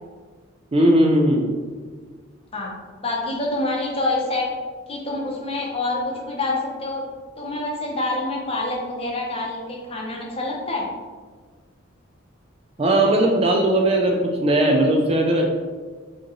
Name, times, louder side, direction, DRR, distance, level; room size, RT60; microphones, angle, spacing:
voice 1, 0.7-1.5 12.8-15.5, right 1 dB, 30° right, 1 dB, 0.4 m, -18 dB
voice 2, 3.0-4.5 4.9-7.0 7.4-10.8, left 2 dB, 30° left, -2 dB, 0.8 m, -26 dB
4.6 x 3.0 x 3.1 m, 1.5 s
head